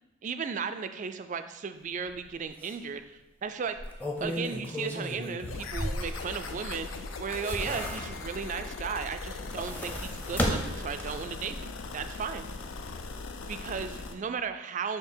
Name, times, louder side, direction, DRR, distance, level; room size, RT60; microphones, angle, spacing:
voice 1, 0.2-3.8 4.2-12.5 13.4-15.0, right 6 dB, 40° right, 9 dB, 0.3 m, -35 dB
sound 1, 2.1-2.2 2.6-2.7 3.7-6.7 7.1-8.4 9.3-11.4 11.8-11.9, equal, 10° left, 0.7 m, -34 dB
sound 2, 5.4-14.1, left 3 dB, 80° left, 0.5 m, -39 dB
6.8 x 3.2 x 4.5 m, 0.99 s
head